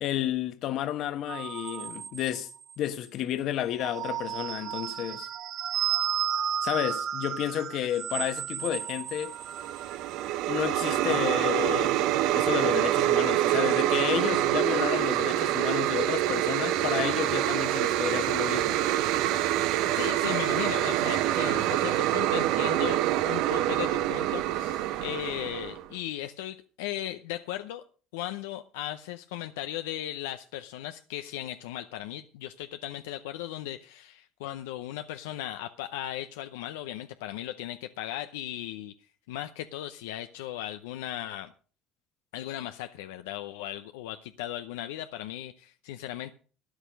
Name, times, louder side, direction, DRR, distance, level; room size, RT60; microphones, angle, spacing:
voice 1, 0.0-2.5 2.8-5.3 6.6-9.3 10.5-12.0 12.3-18.8, left 11 dB, 65° left, 1.2 m, -31 dB
sound 1, 1.3-2.7 3.6-10.3, right 9 dB, 50° right, 1.3 m, -33 dB
sound 2, 9.4-25.9, right 13 dB, 75° right, 0.8 m, -26 dB
voice 2, 19.9-27.8 28.1-38.9 39.3-41.5 42.3-46.3, left 13 dB, 90° left, 0.6 m, -37 dB
13.0 x 10.0 x 5.2 m
supercardioid pair, 80°, 0 cm